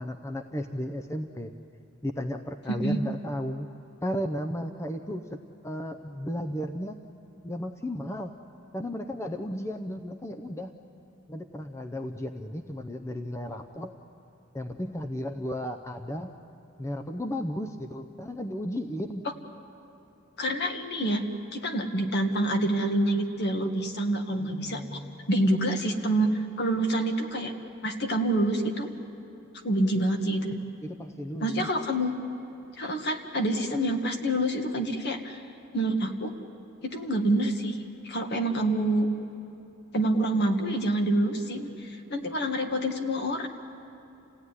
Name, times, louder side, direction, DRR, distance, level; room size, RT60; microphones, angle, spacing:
voice 1, 0.0-1.5 2.0-3.7 4.0-7.0 7.4-8.3 8.7-10.7 11.3-14.0 14.5-16.3 16.8-19.2 24.4-25.3 30.8-31.7, equal, 15° left, 6 dB, 0.7 m, -34 dB
voice 2, 20.4-21.2 21.5-25.0 25.3-27.5 27.8-28.9 29.6-30.5 31.4-32.1 32.8-35.4 35.7-36.3 36.8-37.8 38.0-39.1 39.9-43.5, right 1 dB, 50° left, 4 dB, 1.8 m, -27 dB
28.5 x 17.0 x 9.8 m, 2.9 s
head